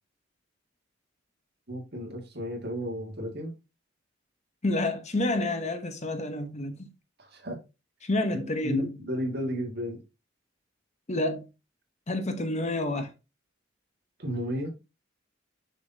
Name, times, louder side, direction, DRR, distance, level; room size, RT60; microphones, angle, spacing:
voice 1, 1.7-3.5 7.3-7.6 8.3-10.0 14.2-14.7, equal, 55° right, 1.8 m, -33 dB
voice 2, 4.6-6.9 8.0-8.9 11.1-11.5 12.1-13.1, left 1 dB, 35° left, 0.8 m, -29 dB
6.4 x 5.6 x 2.7 m
head